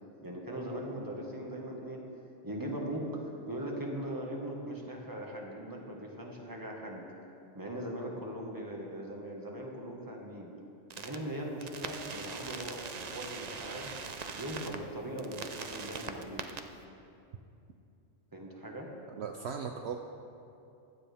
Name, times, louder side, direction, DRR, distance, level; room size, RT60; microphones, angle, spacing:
voice 1, 0.2-2.0 2.4-3.1 3.5-7.0 7.5-10.5 10.9-13.9 14.3-16.5 18.3-18.9, right 1 dB, 15° right, -1 dB, 1.6 m, -40 dB
sound 1, 10.9-11.2 11.6-14.8 15.2-16.6, right 5 dB, 45° right, 0.6 m, -41 dB
voice 2, 19.2-20.0, right 6 dB, 65° right, 4 dB, 0.9 m, -37 dB
16.0 x 12.0 x 3.5 m, 2.7 s
omnidirectional pair, 1.2 m